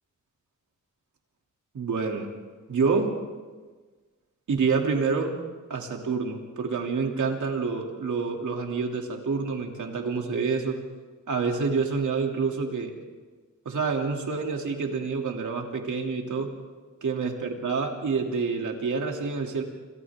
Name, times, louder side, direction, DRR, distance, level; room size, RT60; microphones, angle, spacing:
voice 1, 1.7-2.3 2.7-3.1 4.5-5.4 5.7-10.8 11.3-12.9 13.6-16.5 17.0-19.6, right 5 dB, 75° right, 2 dB, 3.0 m, -27 dB
27.5 x 27.5 x 3.7 m, 1.4 s
wide cardioid pair, 95°, 31 cm